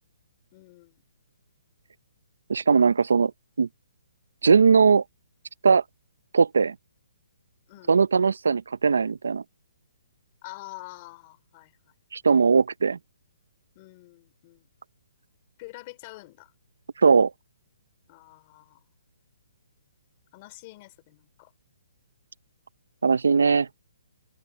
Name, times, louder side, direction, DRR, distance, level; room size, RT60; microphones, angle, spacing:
voice 1, 0.5-1.0 7.7-8.0 10.4-11.9 13.7-14.7 15.6-16.5 18.1-18.9 20.3-21.5, left 22 dB, 25° left, 3.3 m, -46 dB
voice 2, 2.5-3.3 3.6-3.7 4.4-5.0 5.6-5.8 6.3-6.7 7.9-9.4 12.1-13.0 17.0-17.3 23.0-23.7, right 5 dB, 90° right, 0.6 m, -19 dB
hypercardioid pair, 170°, 0 cm